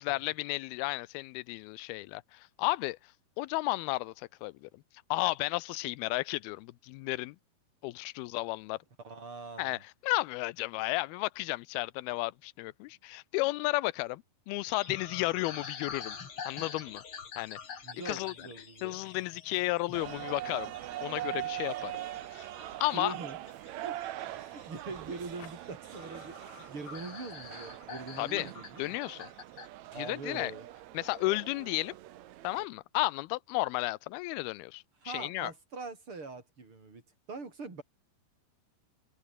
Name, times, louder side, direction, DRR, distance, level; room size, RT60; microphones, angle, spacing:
voice 1, 0.0-3.0 3.4-4.7 5.1-7.4 7.8-8.8 9.6-16.2 16.5-17.0 17.4-17.6 18.1-18.3 18.8-20.7 21.0-21.9 22.3-22.5 22.8-23.1 28.2-28.5 28.8-29.3 30.0-30.5 30.9-31.9 32.4-35.5, left 20 dB, 85° left, 2.5 m, -33 dB
voice 2, 9.0-9.8 17.8-18.9 22.9-23.4 23.8-24.1 24.4-29.0 29.9-30.7 35.0-37.0 37.3-37.8, right 4 dB, 35° right, 5.9 m, -43 dB
sound 1, 14.7-29.7, left 6 dB, 40° left, 2.9 m, -47 dB
sound 2, 19.9-32.7, right 14 dB, 75° right, 1.7 m, -42 dB
omnidirectional pair, 4.4 m